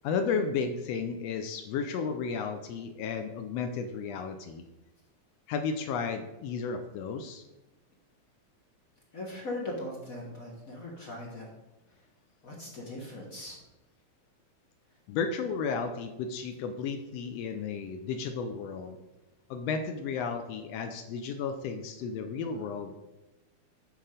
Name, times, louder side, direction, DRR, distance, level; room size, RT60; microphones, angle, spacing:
voice 1, 0.0-4.6 5.5-7.5 15.1-19.0 19.5-23.0, left 5 dB, 85° left, 7 dB, 1.4 m, -33 dB
voice 2, 9.1-11.5 11.9-12.1 12.4-13.6, left 1 dB, 50° left, -2 dB, 0.9 m, -39 dB
8.7 x 4.8 x 5.1 m, 1.0 s
omnidirectional pair, 3.6 m